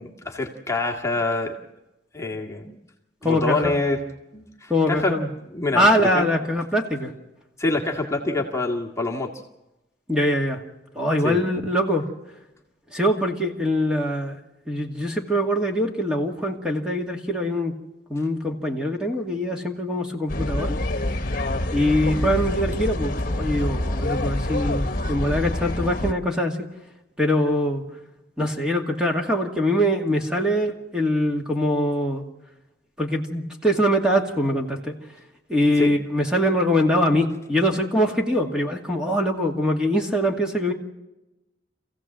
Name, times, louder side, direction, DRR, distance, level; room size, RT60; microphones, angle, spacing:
voice 1, 0.0-1.5 2.1-2.8 3.2-4.0 4.3-5.1 5.5-6.2 7.6-9.3 11.2-11.4 35.8-35.9, left 2 dB, 15° left, 0 dB, 2.0 m, -26 dB
voice 2, 3.2-3.7 4.7-5.3 5.7-7.1 10.1-10.6 10.9-12.0 12.9-14.4 14.7-17.7 18.1-20.8 21.7-26.7 27.2-27.8 28.4-32.2 33.0-34.9 35.5-40.7, equal, 5° right, 1 dB, 2.3 m, -23 dB
sound 1, 20.3-26.1, left 1 dB, 50° left, 1.4 m, -26 dB
26.5 x 16.0 x 7.7 m, 0.96 s
head